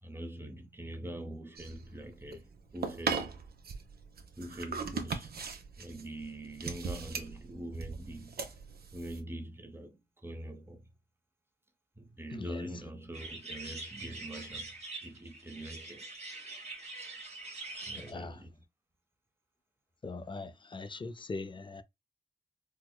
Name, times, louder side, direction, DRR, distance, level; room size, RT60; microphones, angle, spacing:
voice 1, 0.0-3.4 4.4-5.3 5.8-8.4 8.9-10.9 12.0-16.2 17.9-18.5, right 1 dB, 10° right, 0.8 m, -44 dB
sound 1, 1.6-9.2, right 5 dB, 55° right, 0.8 m, -39 dB
voice 2, 12.3-12.7 17.8-18.4 20.0-21.8, left 3 dB, 25° left, 0.5 m, -41 dB
sound 2, 13.1-18.1, right 3 dB, 35° right, 1.1 m, -44 dB
4.5 x 2.1 x 2.2 m
wide cardioid pair, 115°, 18 cm